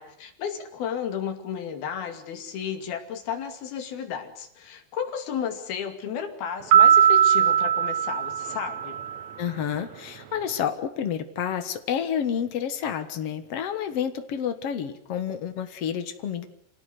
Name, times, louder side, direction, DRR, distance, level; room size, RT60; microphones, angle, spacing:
voice 1, 0.0-9.0, left 8 dB, 60° left, 7 dB, 4.1 m, -33 dB
sound 1, 6.7-9.2, right 9 dB, 80° right, 1.6 m, -19 dB
voice 2, 9.4-16.4, left 8 dB, 75° left, 9 dB, 1.4 m, -29 dB
27.5 x 18.5 x 8.2 m, 0.65 s
omnidirectional pair, 5.2 m